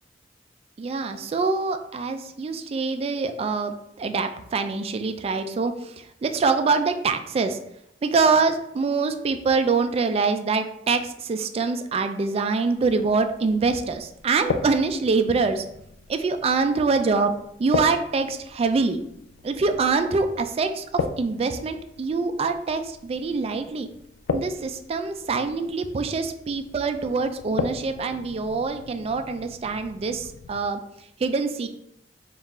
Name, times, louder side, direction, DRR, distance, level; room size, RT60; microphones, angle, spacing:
voice 1, 0.8-7.6 8.0-15.6 16.1-17.3 17.6-19.0 19.4-23.9 24.3-30.8 31.2-31.7, right 4 dB, 35° right, 7 dB, 0.3 m, -24 dB
sound 1, 12.7-30.6, left 4 dB, 80° left, 0.3 m, -37 dB
3.7 x 2.4 x 4.0 m, 0.77 s
head